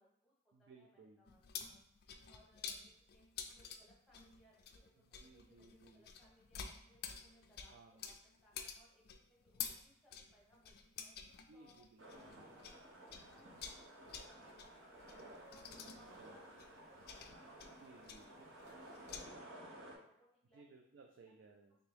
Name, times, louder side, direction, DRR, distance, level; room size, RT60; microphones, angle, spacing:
voice 1, 0.0-0.3 0.6-1.8 2.3-3.3 3.5-8.1 8.4-11.1 11.5-11.8 12.1-15.7 15.9-18.0 18.5-20.6, equal, ahead, -5 dB, 1.0 m, -69 dB
voice 2, 0.5-1.2 4.9-6.1 7.7-8.1 11.2-12.3 16.2-16.4 17.8-18.3 20.5-21.8, right 3 dB, 60° right, 2 dB, 0.3 m, -62 dB
sound 1, 1.3-12.8 13.1-19.2, left 7 dB, 50° left, 0.3 m, -50 dB
sound 2, 12.0-20.0, right 1 dB, 75° right, 0.8 m, -55 dB
3.5 x 2.8 x 3.3 m, 0.77 s
head